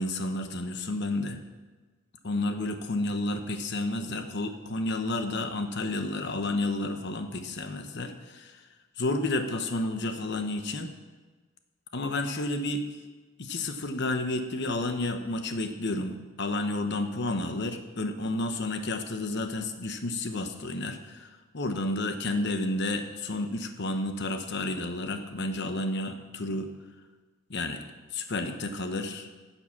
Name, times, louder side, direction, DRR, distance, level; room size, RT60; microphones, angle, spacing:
voice 1, 0.0-1.4 2.2-8.6 9.0-10.9 11.9-12.8 13.4-26.7 27.5-27.8 28.1-29.3, left 2 dB, 55° left, 7 dB, 0.9 m, -31 dB
10.0 x 7.2 x 7.2 m, 1.3 s
head